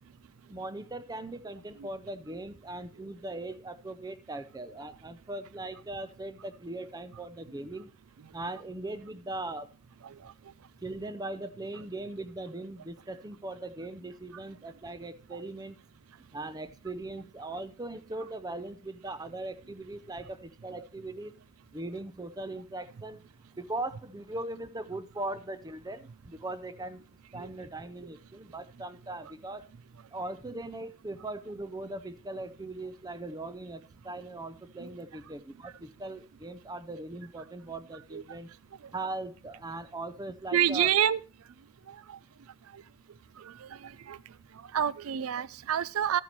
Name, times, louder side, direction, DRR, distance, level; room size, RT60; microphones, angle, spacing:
voice 1, 0.5-7.9 8.3-9.7 10.8-15.8 16.3-21.3 21.7-23.2 23.6-27.0 27.3-29.7 30.1-38.5 38.9-40.9, right 2 dB, 20° right, 0.5 m, -39 dB
voice 2, 40.5-41.2 42.1-42.2 43.8-44.2 44.7-46.2, right 9 dB, 75° right, 0.4 m, -27 dB
13.0 x 9.2 x 3.0 m
head